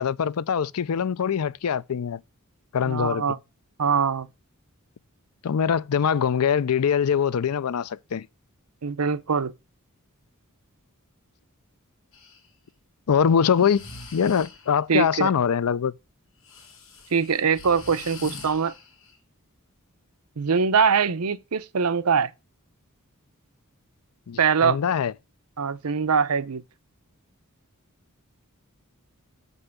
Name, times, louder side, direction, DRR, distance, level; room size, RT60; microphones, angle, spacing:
voice 1, 0.0-2.2 2.7-3.3 5.4-8.3 13.1-13.8 14.1-15.9 24.3-25.1, left 7 dB, 80° left, 0.5 m, -23 dB
voice 2, 2.8-3.4 3.8-4.3 8.8-9.5 14.9-15.3 17.1-18.7 20.4-22.3 24.4-24.8 25.6-26.6, right 6 dB, 80° right, 0.7 m, -23 dB
Breathing, 12.1-12.4 13.5-14.8 16.4-19.2, left 3 dB, 65° left, 2.3 m, -44 dB
6.9 x 5.5 x 6.8 m
head